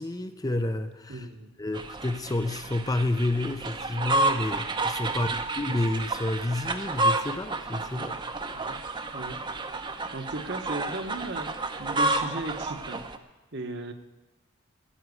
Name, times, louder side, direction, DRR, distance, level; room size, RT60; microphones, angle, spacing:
voice 1, 0.0-1.3 1.6-8.2 8.4-8.5, left 2 dB, 15° left, 9 dB, 0.6 m, -30 dB
voice 2, 1.1-1.5 5.1-5.4 7.9-8.2 8.5-8.8 9.1-9.5 10.1-13.0 13.5-13.9, right 2 dB, 50° right, 7 dB, 1.2 m, -37 dB
sound 1, 1.7-13.2, right 2 dB, 20° right, 0.8 m, -30 dB
15.5 x 7.4 x 9.7 m, 1.1 s
head